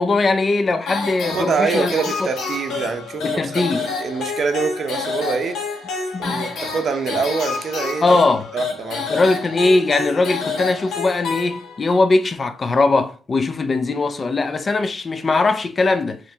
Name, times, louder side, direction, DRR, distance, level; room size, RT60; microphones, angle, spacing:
voice 1, 0.0-2.3 3.2-3.9 6.1-6.5 8.0-8.5 9.1-16.2, left 3 dB, 35° left, 0.4 m, -20 dB
sound 1, 0.9-12.0, left 4 dB, 80° left, 1.1 m, -28 dB
voice 2, 1.3-5.6 6.2-8.0 8.5-9.0, right 5 dB, 50° right, 0.6 m, -25 dB
4.3 x 2.9 x 2.7 m
cardioid pair, 90°, 0 cm